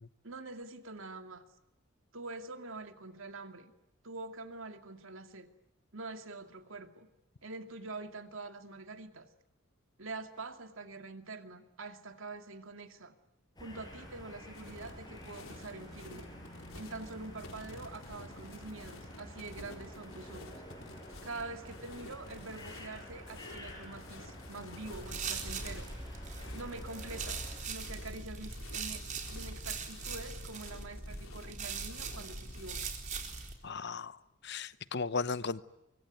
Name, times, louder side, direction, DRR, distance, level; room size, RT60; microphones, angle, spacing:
voice 1, 0.2-1.5 2.1-3.7 4.0-5.5 5.9-7.1 7.4-9.3 10.0-13.1 13.6-16.3 16.7-20.6 21.2-25.9 26.5-32.9, right 3 dB, 70° right, 2.4 m, -45 dB
sound 1, 13.6-27.6, left 1 dB, 20° left, 6.6 m, -49 dB
sound 2, 14.5-32.9, left 2 dB, 80° left, 4.3 m, -52 dB
sound 3, 24.9-33.5, right 4 dB, 35° right, 4.0 m, -41 dB
voice 2, 33.6-34.2 34.4-35.6, left 4 dB, 55° left, 1.0 m, -35 dB
25.0 x 23.5 x 9.4 m
head